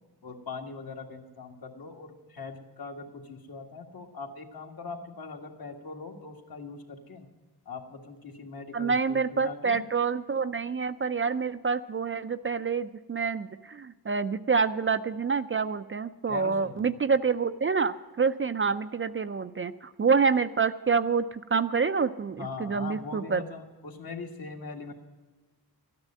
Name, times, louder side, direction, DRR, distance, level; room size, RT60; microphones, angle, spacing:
voice 1, 0.2-7.3 7.7-9.8 16.3-16.9 22.4-24.9, left 4 dB, 65° left, 2 dB, 1.9 m, -41 dB
voice 2, 8.7-23.4, right 5 dB, 35° right, 11 dB, 0.4 m, -27 dB
13.0 x 9.8 x 7.5 m, 1.3 s
wide cardioid pair, 145°, 38 cm